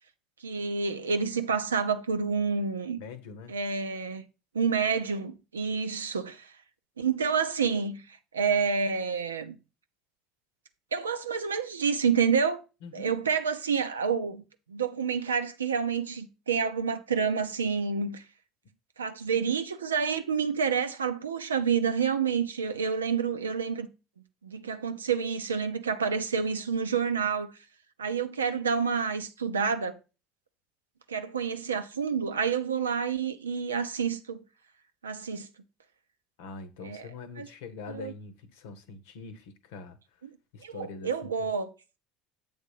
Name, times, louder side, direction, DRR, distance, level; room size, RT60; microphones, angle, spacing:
voice 1, 0.4-3.0 3.5-4.2 4.5-6.5 7.0-9.5 10.9-12.6 12.9-14.4 14.7-18.2 19.0-23.9 24.4-27.5 28.0-30.0 31.1-34.4 35.0-35.5 36.8-37.1 37.4-37.5 37.9-38.1 40.2-40.3 40.6-41.7, right 6 dB, 90° right, 0.6 m, -28 dB
voice 2, 3.0-3.5 12.8-13.1 36.4-40.0 40.5-41.5, left 4 dB, 70° left, 0.9 m, -43 dB
7.7 x 3.6 x 5.5 m
hypercardioid pair, 70°, 0 cm